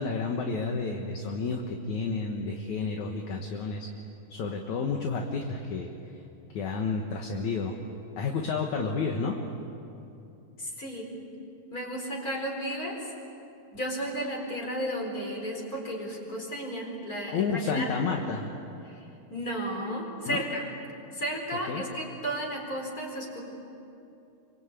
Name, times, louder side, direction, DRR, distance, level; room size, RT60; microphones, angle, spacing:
voice 1, 0.0-3.9 4.3-5.9 6.5-7.8 8.2-9.4 17.3-18.5 20.3-20.4 21.7-21.8, left 4 dB, 65° left, 2 dB, 2.6 m, -30 dB
voice 2, 10.6-11.1 11.7-13.1 13.7-17.9 18.8-20.6 21.1-23.4, equal, 25° left, 0 dB, 4.7 m, -33 dB
26.0 x 25.0 x 8.4 m, 2.7 s
omnidirectional pair, 3.9 m